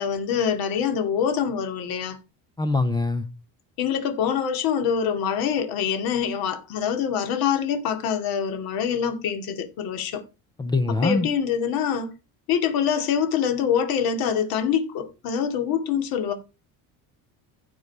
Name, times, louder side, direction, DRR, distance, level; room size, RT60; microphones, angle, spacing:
voice 1, 0.0-2.2 3.8-10.2 10.9-12.1 12.5-16.3, left 8 dB, 65° left, 2.5 m, -25 dB
voice 2, 2.6-3.3 10.6-11.3, left 3 dB, 10° left, 0.5 m, -23 dB
15.0 x 5.5 x 4.7 m
cardioid pair, 165°, 39 cm